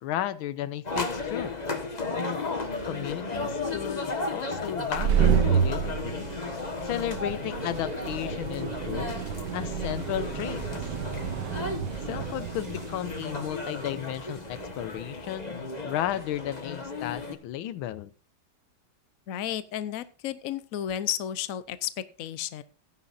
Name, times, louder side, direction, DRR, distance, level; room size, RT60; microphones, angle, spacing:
voice 1, 0.0-1.5 2.8-6.3 6.8-9.2 9.5-10.6 12.1-15.6 15.8-18.1, left 12 dB, 90° left, 14 dB, 1.6 m, -34 dB
sound 1, 0.8-17.3, left 3 dB, 25° left, 1.2 m, -34 dB
sound 2, 4.8-15.2, right 7 dB, 65° right, 1.5 m, -30 dB
voice 2, 19.3-22.6, left 11 dB, 60° left, 14 dB, 0.9 m, -33 dB
17.5 x 9.8 x 2.6 m, 0.34 s
omnidirectional pair, 2.2 m